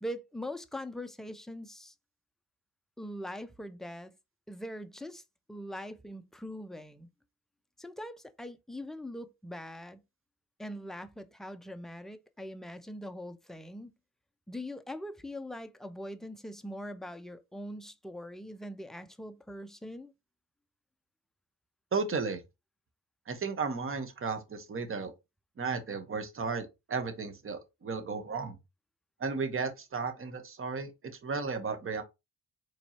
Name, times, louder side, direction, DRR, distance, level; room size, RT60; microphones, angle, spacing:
voice 1, 0.0-1.9 3.0-4.1 4.5-5.2 5.5-7.1 7.8-10.0 10.6-13.9 14.5-20.1, equal, ahead, 0.5 m, -42 dB
voice 2, 21.9-22.4 23.3-25.1 25.6-28.5 29.2-30.9 31.2-32.0, right 4 dB, 35° right, 1.1 m, -34 dB
4.3 x 3.1 x 2.8 m
cardioid pair, 75°, 38 cm